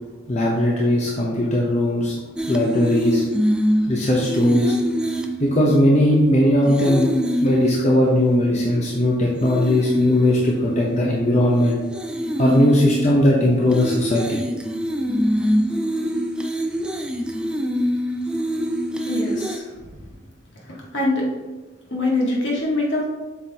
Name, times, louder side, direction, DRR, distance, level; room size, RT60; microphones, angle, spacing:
voice 1, 0.3-2.2 2.5-3.2 3.9-4.8 5.4-7.1 7.4-11.8 12.4-14.4, left 1 dB, 35° left, -3 dB, 0.8 m, -18 dB
sound 1, 2.4-9.0 9.4-19.6, equal, 5° right, 0.4 m, -25 dB
voice 2, 19.1-20.2 20.5-21.3 21.9-23.0, left 2 dB, 65° left, -3 dB, 1.8 m, -24 dB
7.6 x 6.0 x 2.9 m, 1.2 s
head